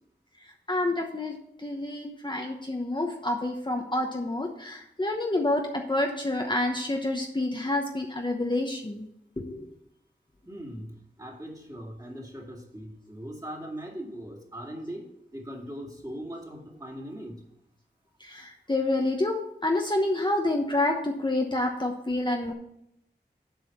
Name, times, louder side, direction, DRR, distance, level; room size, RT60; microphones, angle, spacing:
voice 1, 0.7-1.4 1.6-9.1 9.4-9.6 18.2-22.5, left 2 dB, 25° left, 2 dB, 0.9 m, -28 dB
voice 2, 10.5-15.1 15.3-17.4 22.4-22.5, equal, 20° right, 0 dB, 2.1 m, -40 dB
7.7 x 4.9 x 7.1 m, 0.79 s
wide cardioid pair, 55°, 19 cm